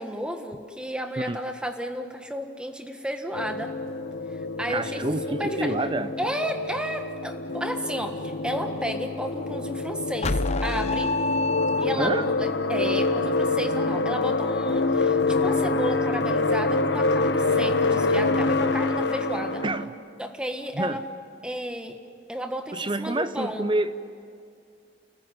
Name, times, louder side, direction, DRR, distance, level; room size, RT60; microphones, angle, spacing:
voice 1, 0.0-3.7 4.3-5.7 6.2-11.1 11.8-19.6 20.2-21.0 21.4-22.0 22.3-23.6, equal, 5° right, 6 dB, 1.5 m, -32 dB
sound 1, 3.3-19.9, left 3 dB, 70° left, 1.2 m, -26 dB
voice 2, 4.7-6.2 12.0-12.3 19.6-20.0 20.7-21.1 22.7-23.9, right 2 dB, 25° right, 12 dB, 0.8 m, -28 dB
sound 2, 10.2-12.3, left 2 dB, 35° left, 0.8 m, -27 dB
29.5 x 20.5 x 9.1 m, 2.3 s
head